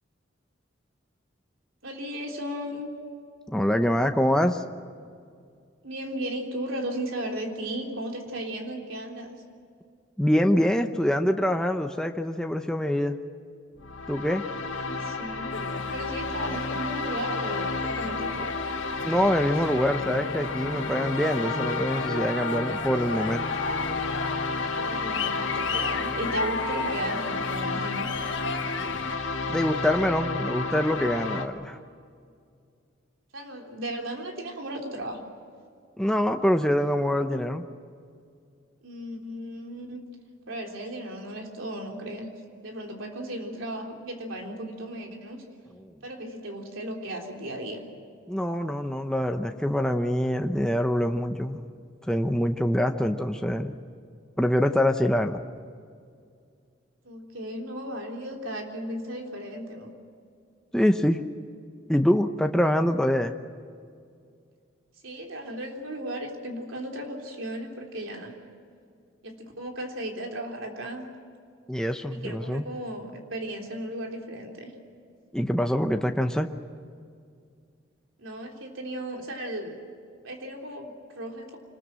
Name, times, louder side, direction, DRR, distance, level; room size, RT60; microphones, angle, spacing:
voice 1, 1.8-2.9 5.8-9.3 14.8-15.5 15.9-18.6 24.8-28.1 33.3-35.2 38.8-40.0 40.5-42.3 42.6-45.4 46.0-47.8 57.0-59.9 65.0-68.3 69.2-71.1 72.1-74.7 78.2-79.8 80.2-81.6, right 1 dB, 90° right, 1 dB, 3.6 m, -35 dB
voice 2, 3.5-4.6 10.2-13.2 14.1-14.4 19.0-23.4 29.5-31.8 36.0-37.6 45.8-45.9 48.3-51.6 52.1-53.8 54.4-55.4 60.7-61.2 61.9-63.3 71.7-72.6 75.3-76.5, equal, 5° left, 5 dB, 0.8 m, -25 dB
sound 1, 13.8-31.5, left 3 dB, 85° left, 1.9 m, -31 dB
sound 2, 15.5-29.2, left 4 dB, 70° left, 1.5 m, -35 dB
25.5 x 20.5 x 7.6 m, 2.3 s
head